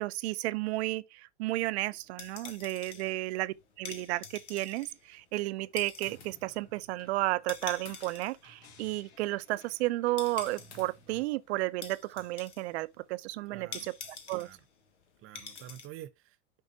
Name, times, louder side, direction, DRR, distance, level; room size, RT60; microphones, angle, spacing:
voice 1, 0.0-14.5, right 18 dB, 70° right, 0.7 m, -33 dB
sound 1, 2.0-15.9, left 6 dB, 85° left, 1.7 m, -47 dB
sound 2, 6.0-11.2, left 1 dB, 60° left, 2.1 m, -58 dB
voice 2, 13.5-13.9 14.3-14.6 15.2-16.6, right 13 dB, 40° right, 0.9 m, -48 dB
11.5 x 3.9 x 2.8 m
hypercardioid pair, 105°, 34 cm